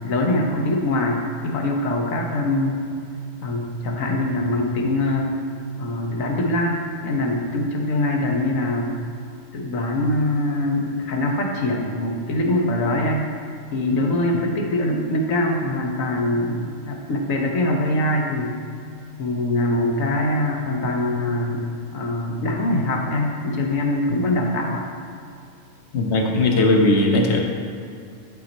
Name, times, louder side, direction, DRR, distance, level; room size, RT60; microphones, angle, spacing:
voice 1, 0.0-2.8 3.4-5.3 5.8-9.0 9.5-13.3 13.7-18.5 19.2-24.9, left 1 dB, 85° left, 1 dB, 1.4 m, -23 dB
voice 2, 25.9-27.4, left 2 dB, 60° left, 1 dB, 1.2 m, -18 dB
11.0 x 4.0 x 4.3 m, 2.5 s
omnidirectional pair, 1.4 m